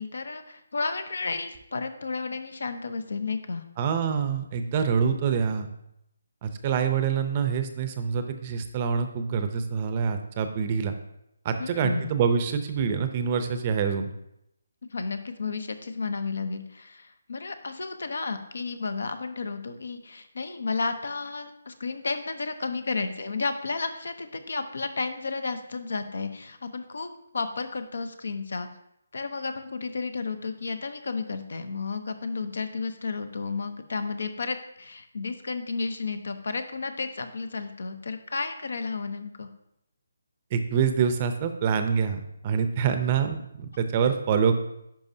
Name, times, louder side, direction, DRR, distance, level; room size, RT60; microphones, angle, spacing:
voice 1, 0.0-3.6 11.6-12.1 14.9-27.1 27.3-28.7 29.1-39.5, left 4 dB, 70° left, 9 dB, 0.8 m, -32 dB
voice 2, 3.8-5.7 6.4-10.9 11.4-14.1 40.5-44.5, right 6 dB, 30° right, 8 dB, 0.6 m, -26 dB
10.5 x 5.2 x 2.7 m, 0.80 s
hypercardioid pair, 160°, 0 cm